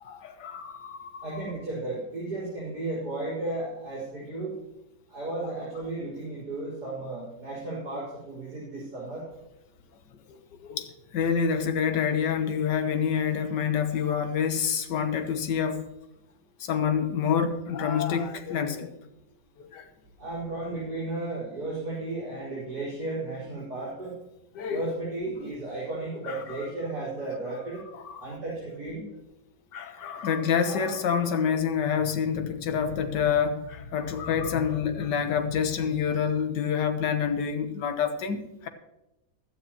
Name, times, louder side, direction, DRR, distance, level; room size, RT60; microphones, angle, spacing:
voice 1, 0.0-1.5 5.4-5.5 10.3-10.9 11.1-15.9 16.6-18.9 19.6-19.9 24.5-24.9 25.4-25.5 26.2-26.7 27.9-28.3 29.7-38.7, left 7 dB, 70° left, 8 dB, 1.7 m, -27 dB
voice 2, 1.2-4.5 5.1-9.2 20.2-24.1 24.7-27.8 28.2-29.0, right 2 dB, 60° right, -8 dB, 5.1 m, -34 dB
16.0 x 12.0 x 3.0 m, 0.92 s
omnidirectional pair, 1.9 m